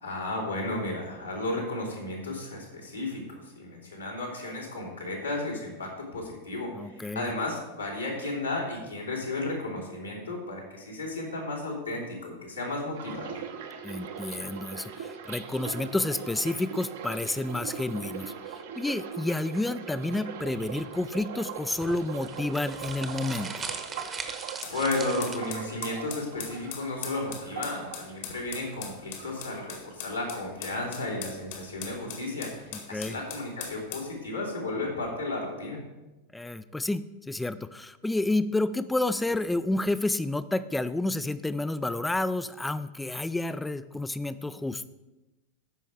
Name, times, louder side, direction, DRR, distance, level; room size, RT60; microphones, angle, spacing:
voice 1, 0.0-13.4 24.7-35.8, left 2 dB, 80° left, -5 dB, 2.9 m, -33 dB
voice 2, 6.7-7.3 13.8-23.7 32.7-33.2 36.3-44.9, left 2 dB, 5° left, 14 dB, 0.4 m, -30 dB
sound 1, 12.9-28.9 29.2-30.1 30.4-30.7, right 7 dB, 55° right, 0.9 m, -41 dB
sound 2, 21.8-25.7, right 5 dB, 20° right, 1.0 m, -39 dB
sound 3, 24.6-34.1, left 7 dB, 50° left, 1.6 m, -40 dB
14.0 x 5.4 x 4.7 m, 1.0 s
figure-of-eight pair, 90°, 0 cm